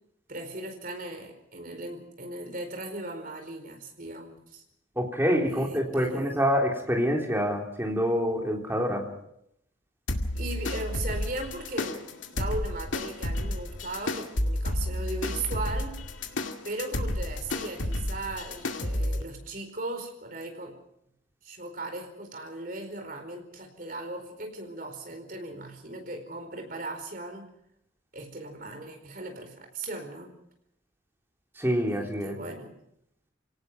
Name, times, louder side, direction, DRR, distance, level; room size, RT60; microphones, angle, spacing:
voice 1, 0.3-4.6 5.5-6.4 10.3-16.0 16.6-20.8 21.4-27.5 28.1-30.3 31.9-32.8, right 2 dB, 45° right, 5 dB, 4.6 m, -38 dB
voice 2, 5.0-9.1 31.6-32.4, equal, 10° right, 0 dB, 3.6 m, -26 dB
sound 1, 10.1-19.2, left 1 dB, 85° left, 2.2 m, -31 dB
28.5 x 18.0 x 6.0 m, 0.77 s
head